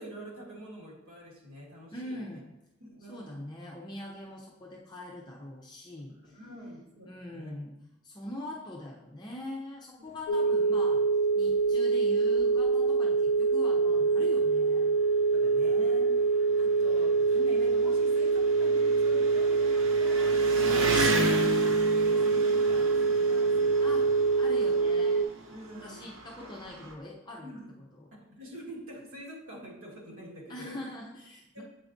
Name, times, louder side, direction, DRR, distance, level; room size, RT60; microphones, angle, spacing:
voice 1, 0.0-2.2 2.8-3.3 6.1-7.5 10.4-10.6 15.3-24.1 25.1-26.0 26.4-26.5 27.4-27.7 28.3-30.8 31.5-31.6, equal, 85° right, -4 dB, 1.7 m, -46 dB
voice 2, 1.9-2.4 3.1-6.4 7.0-7.8 8.0-11.1 11.4-14.9 20.6-20.8 23.8-24.1 24.4-25.3 25.8-27.6 28.0-28.1 30.5-31.6, left 1 dB, 20° left, -3 dB, 0.5 m, -42 dB
sound 1, 10.3-25.3, right 4 dB, 75° left, 0.4 m, -25 dB
Engine, 12.4-12.5 12.9-13.0 13.9-14.0 14.2-26.9, right 1 dB, 65° right, 0.7 m, -35 dB
7.9 x 4.6 x 2.6 m, 0.93 s
head